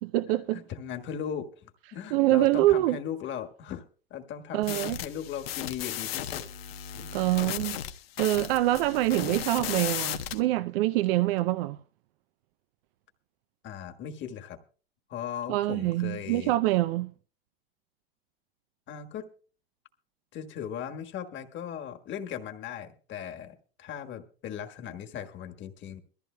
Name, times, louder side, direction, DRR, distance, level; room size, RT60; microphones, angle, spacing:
voice 1, 0.0-0.6 2.1-3.0 4.5-5.0 7.1-7.8 8.2-11.8 15.5-17.1, right 16 dB, 70° right, 0.6 m, -25 dB
voice 2, 0.5-3.8 4.1-6.4 6.9-7.1 13.6-14.6 15.1-16.5 18.9-19.3 20.3-26.0, left 8 dB, 40° left, 1.5 m, -38 dB
sound 1, 4.6-10.4, left 11 dB, 85° left, 1.0 m, -35 dB
22.0 x 14.0 x 2.2 m
hypercardioid pair, 105°, 29 cm